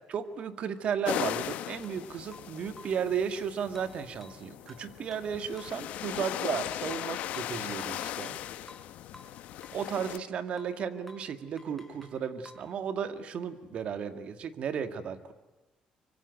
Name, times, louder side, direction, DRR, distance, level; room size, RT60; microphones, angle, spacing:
voice 1, 0.1-8.4 9.7-15.3, right 7 dB, 55° right, 10 dB, 1.9 m, -34 dB
sound 1, 1.0-10.2, left 12 dB, 80° left, 1.1 m, -38 dB
sound 2, 1.8-2.0 2.3-3.1 3.8-5.8 6.9-8.4 8.7-10.3 10.6-10.8 11.1-11.3 11.6-12.7, left 1 dB, 5° left, 4.2 m, -53 dB
25.0 x 24.5 x 9.3 m, 1.1 s
cardioid pair, 135°, 2 cm